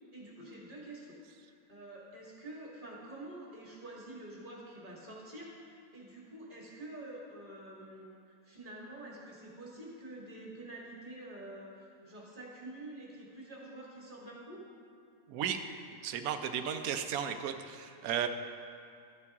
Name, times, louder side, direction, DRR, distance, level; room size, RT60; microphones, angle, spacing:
voice 1, 0.1-14.6, right 1 dB, 35° right, -4 dB, 2.1 m, -48 dB
voice 2, 16.0-18.3, right 8 dB, 85° right, 8 dB, 1.1 m, -34 dB
13.0 x 8.5 x 3.6 m, 2.4 s
omnidirectional pair, 1.5 m